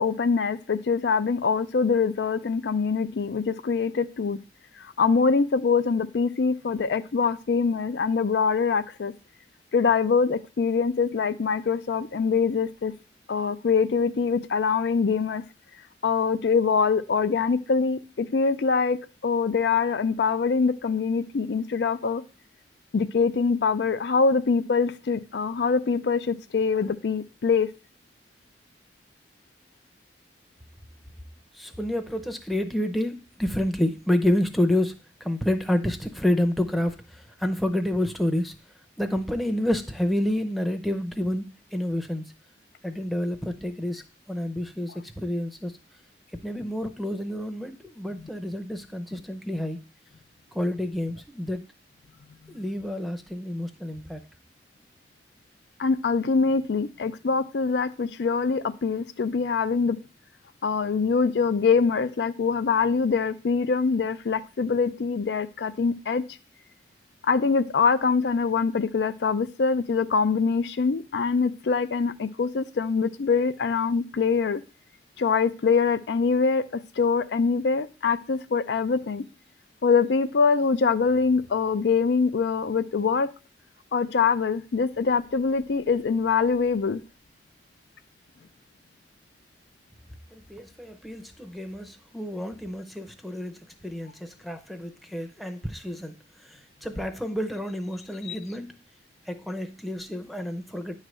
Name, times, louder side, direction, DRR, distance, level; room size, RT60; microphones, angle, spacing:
voice 1, 0.0-4.4 4.8-9.1 9.7-12.9 13.3-15.4 16.0-22.2 22.9-27.7 55.8-60.0 60.6-66.2 67.2-74.6 75.2-79.3 79.8-83.3 83.9-87.0 98.2-98.4, left 5 dB, 70° left, 12 dB, 0.4 m, -24 dB
voice 2, 31.5-34.9 35.2-38.5 39.0-42.2 42.8-44.0 44.3-45.7 46.4-49.8 50.5-51.6 52.5-54.2 90.3-93.6 93.8-96.1 96.8-98.7 99.3-100.9, left 1 dB, ahead, 7 dB, 0.6 m, -29 dB
9.8 x 3.3 x 6.1 m, 0.34 s
head